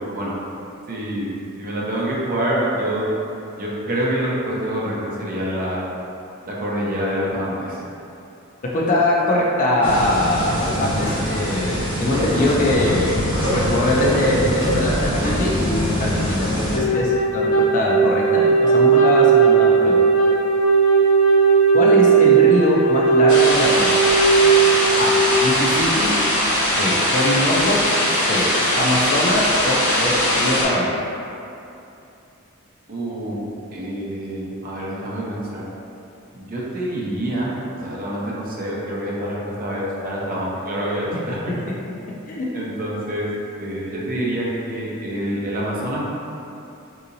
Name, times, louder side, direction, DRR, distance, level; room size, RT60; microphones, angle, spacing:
voice 1, 0.9-1.3 1.6-3.0 3.6-5.8 6.5-7.8 32.9-33.4 33.7-35.6 36.3-37.5 37.8-41.4 42.5-43.3 43.6-46.1, right 1 dB, 45° right, -5 dB, 0.6 m, -26 dB
voice 2, 8.7-13.1 13.5-20.0 21.7-23.9 25.0-26.1 26.8-27.8 28.1-28.5 28.7-30.9 42.3-42.5, left 1 dB, 40° left, -4 dB, 0.4 m, -22 dB
sound 1, 9.8-16.8, equal, 10° right, 1.3 m, -23 dB
Wind instrument woodwind instrument, 16.7-25.3, right 5 dB, 80° left, 0.7 m, -16 dB
sound 2, 23.3-30.6, left 1 dB, 60° left, 1.3 m, -20 dB
3.7 x 2.8 x 2.6 m, 2.8 s
head